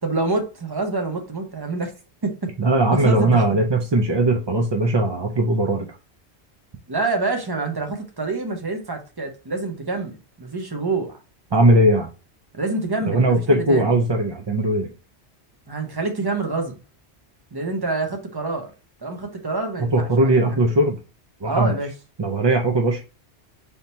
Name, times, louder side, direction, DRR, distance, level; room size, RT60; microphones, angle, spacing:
voice 1, 0.0-1.9 2.2-2.5 2.9-3.4 6.9-11.2 12.5-13.9 15.7-16.7 17.5-18.7 19.0-20.1 20.4-20.6 21.4-21.9, right 3 dB, 25° right, 0.7 m, -26 dB
voice 2, 2.6-5.9 11.5-12.1 13.1-14.9 19.8-21.0 21.4-21.8 22.2-23.0, right 2 dB, 40° right, 0.3 m, -19 dB
3.6 x 2.8 x 4.1 m
omnidirectional pair, 1.1 m